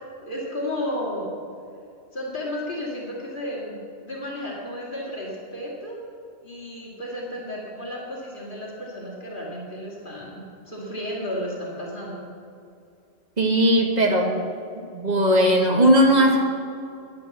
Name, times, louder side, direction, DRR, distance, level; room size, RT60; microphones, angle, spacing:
voice 1, 0.2-1.3 2.1-3.8 4.0-6.0 6.4-12.3, left 1 dB, 50° left, -4 dB, 2.4 m, -33 dB
voice 2, 13.4-14.4 14.9-16.4, equal, 40° right, 1 dB, 1.7 m, -18 dB
10.5 x 9.9 x 7.2 m, 2.5 s
omnidirectional pair, 1.1 m